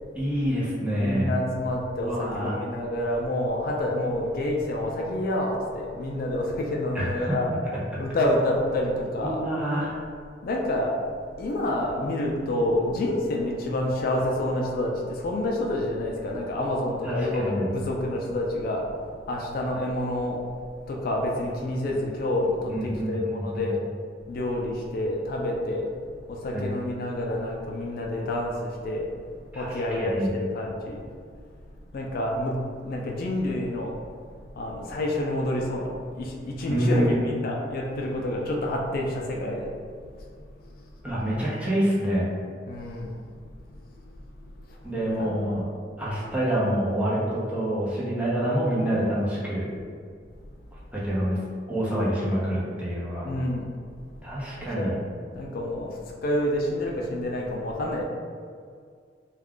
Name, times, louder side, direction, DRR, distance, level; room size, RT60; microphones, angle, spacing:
voice 1, 0.2-1.4 2.0-2.6 6.9-7.4 9.2-9.9 17.0-17.7 22.7-23.7 26.5-26.7 29.5-30.3 36.7-37.2 41.0-42.3 44.8-45.7 46.0-49.7 50.9-51.4 51.7-53.3 54.2-55.0, right 1 dB, 10° right, -8 dB, 0.7 m, -27 dB
voice 2, 1.0-7.5 8.0-9.4 10.4-10.9 11.4-18.8 19.3-20.4 20.9-23.8 24.3-25.9 26.3-29.1 29.5-31.1 31.9-32.5 32.8-33.9 34.5-35.9 36.1-39.7 40.2-40.3 40.7-40.8 42.7-43.2 44.5-45.7 53.2-53.7 54.1-54.2 54.8-55.0 55.3-58.0, left 1 dB, 55° left, -1 dB, 0.4 m, -28 dB
2.4 x 2.3 x 3.6 m, 2.1 s
head